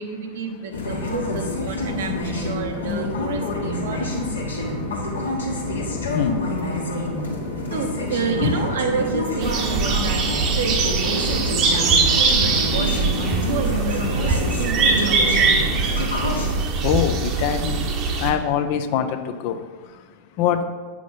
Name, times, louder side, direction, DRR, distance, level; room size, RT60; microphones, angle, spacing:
voice 1, 0.0-4.1 7.7-10.2 10.5-15.8, right 5 dB, 60° right, 0.9 m, -30 dB
sound 1, 0.7-16.5, left 2 dB, 70° left, 1.4 m, -27 dB
voice 2, 4.6-7.7 8.4-8.5 12.2-12.8 13.4-13.5 14.1-14.6 15.7-20.6, left 9 dB, 45° left, 0.5 m, -28 dB
sound 2, 9.4-18.3, right 4 dB, 35° right, 0.9 m, -22 dB
8.3 x 6.0 x 3.9 m
figure-of-eight pair, 90°, 0 cm